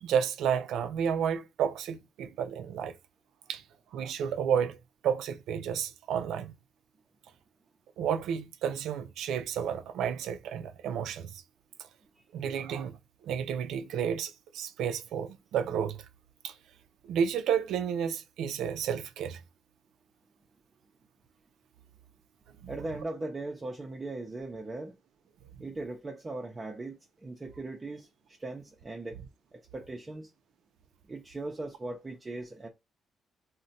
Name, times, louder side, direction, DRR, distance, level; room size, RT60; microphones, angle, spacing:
voice 1, 0.0-2.9 3.5-3.6 3.9-4.8 5.0-6.5 8.0-11.3 12.3-13.0 13.2-16.0 16.4-16.5 17.1-19.4 22.6-22.7, right 8 dB, 80° right, 0.3 m, -31 dB
voice 2, 22.7-24.9 25.6-29.2 29.5-30.3 31.1-32.7, right 2 dB, 25° right, 0.5 m, -39 dB
2.5 x 2.1 x 4.0 m
cardioid pair, 90°, 0 cm